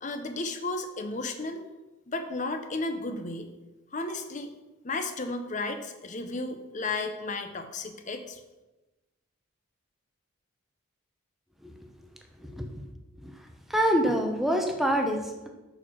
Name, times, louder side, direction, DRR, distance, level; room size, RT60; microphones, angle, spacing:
voice 1, 0.0-1.6 2.1-3.5 3.9-4.5 4.8-8.4, left 2 dB, 35° left, 7 dB, 0.6 m, -33 dB
voice 2, 13.7-15.5, equal, ahead, 3 dB, 0.7 m, -26 dB
6.5 x 4.6 x 6.0 m, 1.1 s
head